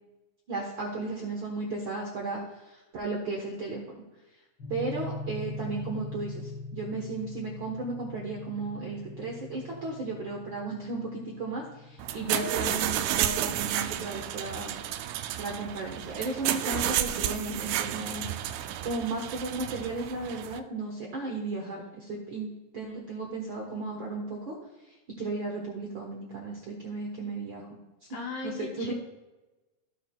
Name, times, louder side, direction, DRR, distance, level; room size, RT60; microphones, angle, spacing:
voice 1, 0.5-4.0 4.7-14.8 15.4-18.3 18.8-24.5 24.9-28.1 28.4-28.9, right 3 dB, 65° right, -1 dB, 1.2 m, -35 dB
sound 1, 4.6-14.7, left 2 dB, 40° left, 3.6 m, -42 dB
sound 2, 12.0-20.6, right 11 dB, 85° right, 1.7 m, -31 dB
voice 2, 28.1-28.9, left 4 dB, 65° left, 0 dB, 1.9 m, -37 dB
16.0 x 6.3 x 2.3 m, 1.1 s
omnidirectional pair, 3.8 m